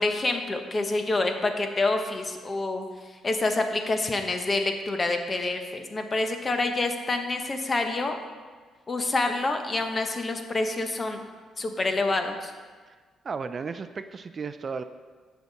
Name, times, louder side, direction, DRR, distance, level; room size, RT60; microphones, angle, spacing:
voice 1, 0.0-2.8 3.2-8.2 8.9-11.2 11.6-12.5, left 2 dB, 30° left, 5 dB, 1.1 m, -27 dB
voice 2, 13.2-14.8, right 5 dB, 40° right, 11 dB, 0.4 m, -34 dB
15.0 x 5.8 x 4.2 m, 1.5 s
cardioid pair, 90°, 0 cm